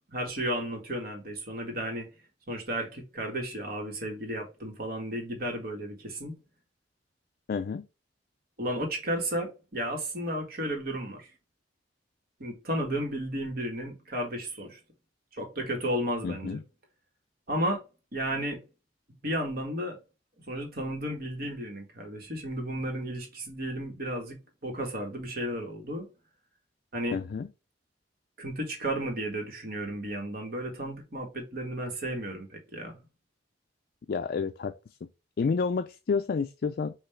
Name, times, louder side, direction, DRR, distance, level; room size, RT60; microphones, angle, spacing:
voice 1, 0.1-2.1 2.5-6.3 8.6-11.3 12.4-14.8 15.3-16.6 17.5-17.8 18.1-18.6 19.2-20.0 20.5-26.1 26.9-27.2 28.4-33.0, right 1 dB, 55° right, 1.7 m, -33 dB
voice 2, 7.5-7.8 16.2-16.6 27.1-27.5 34.1-34.7 35.4-36.9, left 5 dB, 55° left, 0.4 m, -29 dB
5.7 x 2.9 x 3.1 m
head